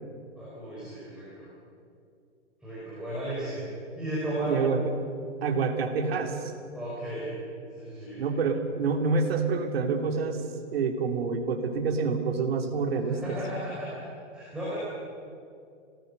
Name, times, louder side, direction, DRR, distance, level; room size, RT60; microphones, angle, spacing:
voice 1, 0.4-1.5 2.6-3.7 3.9-4.6 6.7-7.3 7.7-8.2 13.0-13.9 14.3-14.8, right 1 dB, ahead, -10 dB, 5.3 m, -35 dB
voice 2, 4.4-4.8 5.4-6.5 8.2-13.4, right 4 dB, 55° right, 4 dB, 2.9 m, -27 dB
25.5 x 18.5 x 6.8 m, 2.4 s
hypercardioid pair, 160°, 36 cm